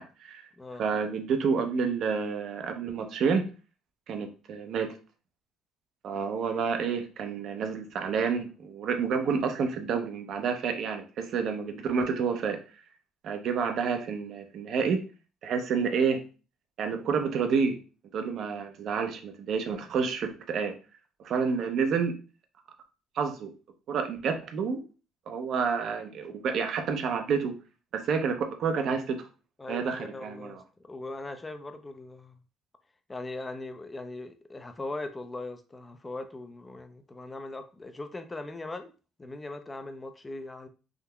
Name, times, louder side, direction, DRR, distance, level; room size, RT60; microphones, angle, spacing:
voice 1, 0.0-0.5 0.8-3.5 4.1-5.0 6.0-12.6 13.2-15.0 15.4-16.2 16.8-17.8 18.1-20.8 21.2-22.2 23.2-23.5 23.9-24.8 25.3-27.6 27.9-29.3 29.7-30.6, right 5 dB, 60° right, 6 dB, 0.6 m, -29 dB
voice 2, 29.6-32.4 33.1-38.9 39.2-40.7, left 2 dB, 20° left, 8 dB, 0.5 m, -40 dB
3.6 x 2.8 x 2.2 m, 0.34 s
supercardioid pair, 85°, 0 cm